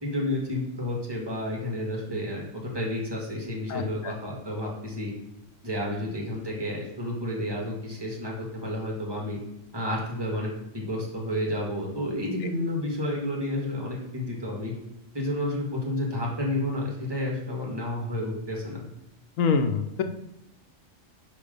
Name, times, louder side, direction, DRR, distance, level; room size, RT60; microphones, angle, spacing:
voice 1, 0.0-5.1 5.6-9.4 9.7-10.5 10.7-14.7 15.1-18.9, left 1 dB, 20° right, -2 dB, 1.7 m, -31 dB
voice 2, 19.4-20.0, left 5 dB, 80° left, 6 dB, 1.0 m, -24 dB
5.2 x 4.7 x 5.2 m, 0.87 s
omnidirectional pair, 1.4 m